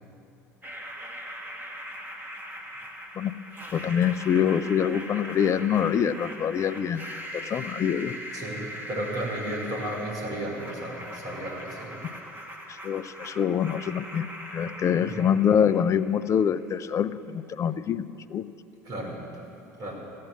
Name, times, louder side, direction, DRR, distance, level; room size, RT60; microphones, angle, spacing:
sound 1, 0.6-16.6, equal, 20° right, 2.0 m, -40 dB
voice 1, 3.7-8.1 12.7-14.3 14.5-18.4, left 8 dB, 35° left, 14 dB, 0.6 m, -25 dB
voice 2, 8.3-12.1 15.0-15.3 18.8-19.3 19.6-19.9, right 1 dB, 50° right, 0 dB, 4.5 m, -34 dB
15.5 x 8.5 x 9.7 m, 2.8 s
figure-of-eight pair, 65°, 9 cm